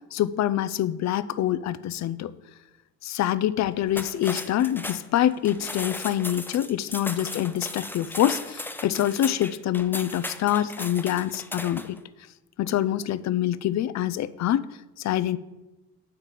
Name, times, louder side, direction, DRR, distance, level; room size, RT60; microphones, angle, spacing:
voice 1, 0.1-2.3 3.0-12.0 12.6-14.7 15.0-15.4, left 12 dB, 65° left, 16 dB, 0.5 m, -25 dB
sound 1, 3.9-12.0, left 2 dB, 5° left, 0.6 m, -36 dB
6.6 x 5.7 x 7.4 m, 1.1 s
cardioid pair, 90°, 30 cm